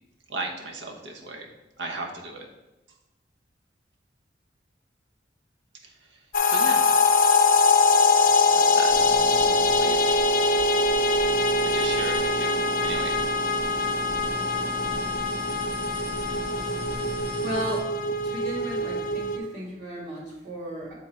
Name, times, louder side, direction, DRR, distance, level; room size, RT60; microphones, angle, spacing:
voice 1, 0.3-1.5 1.8-2.5 5.8-6.2 6.5-6.8 8.2-9.0 9.8-10.2 11.6-12.6 12.8-13.2, right 3 dB, 80° right, 2 dB, 1.0 m, -36 dB
sound 1, 6.3-19.4, left 3 dB, 50° left, 0.5 m, -23 dB
sound 2, 8.9-17.8, equal, 60° right, 1.2 m, -37 dB
voice 2, 17.4-20.9, equal, 40° right, -6 dB, 1.9 m, -35 dB
7.1 x 3.7 x 4.4 m, 0.99 s
head